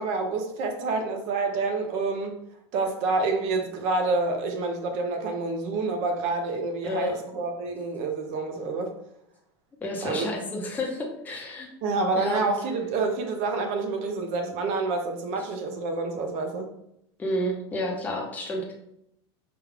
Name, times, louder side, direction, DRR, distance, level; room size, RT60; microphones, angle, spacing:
voice 1, 0.0-2.4 2.7-8.9 10.0-10.3 11.8-16.7, right 3 dB, 50° right, 5 dB, 0.8 m, -28 dB
voice 2, 6.8-7.2 9.8-11.7 12.2-12.5 17.2-18.7, left 1 dB, 10° left, -1 dB, 0.7 m, -30 dB
4.9 x 2.4 x 3.3 m, 0.78 s
supercardioid pair, 145°, 15 cm